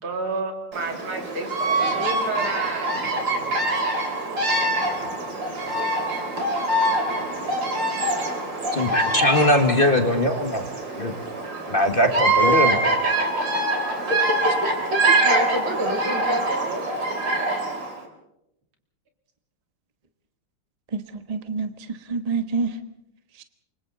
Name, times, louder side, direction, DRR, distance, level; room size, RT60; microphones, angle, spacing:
voice 1, 0.0-3.0 5.4-5.5 14.9-16.9, right 2 dB, 75° right, 2 dB, 4.1 m, -30 dB
Bird vocalization bird call bird song, 0.7-18.0, right 2 dB, 55° right, 3.9 m, -24 dB
voice 2, 8.7-10.7 11.0-11.1 11.7-12.8, left 1 dB, 25° left, 4 dB, 1.9 m, -20 dB
voice 3, 20.9-22.8 23.4-23.5, right 4 dB, 25° right, 7 dB, 1.0 m, -28 dB
28.5 x 24.5 x 4.1 m, 0.83 s
omnidirectional pair, 2.3 m